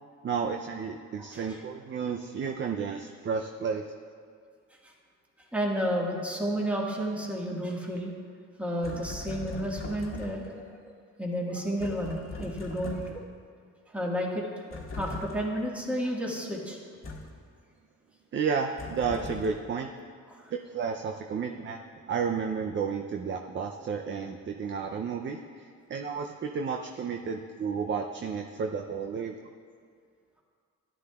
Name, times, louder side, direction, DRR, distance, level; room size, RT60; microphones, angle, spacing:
voice 1, 0.2-3.8 18.3-19.9 20.5-21.8 22.1-29.4, right 6 dB, 40° right, 4 dB, 0.6 m, -32 dB
voice 2, 1.2-1.6 4.8-4.9 5.5-8.1 8.6-10.9 11.2-13.2 13.9-16.8 20.3-20.4, equal, 5° right, -2 dB, 1.6 m, -32 dB
sound 1, 8.8-10.6 11.8-13.4 14.7-15.6 17.0-17.5 18.8-19.7, left 3 dB, 45° left, 1.5 m, -40 dB
13.5 x 11.5 x 2.4 m, 2.2 s
cardioid pair, 90°, 30 cm